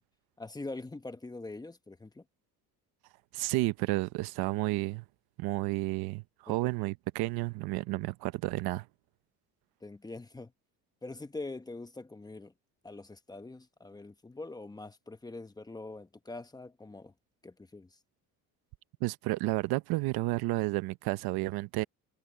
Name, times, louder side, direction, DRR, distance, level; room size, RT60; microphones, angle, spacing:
voice 1, 0.4-2.2 6.5-6.6 9.8-10.5 11.0-12.5 12.8-17.1 17.4-18.0, left 2 dB, 10° left, 1.0 m, -43 dB
voice 2, 3.3-5.0 5.4-8.9 19.0-21.8, right 20 dB, 75° right, 0.8 m, -31 dB
cardioid pair, 130°, 37 cm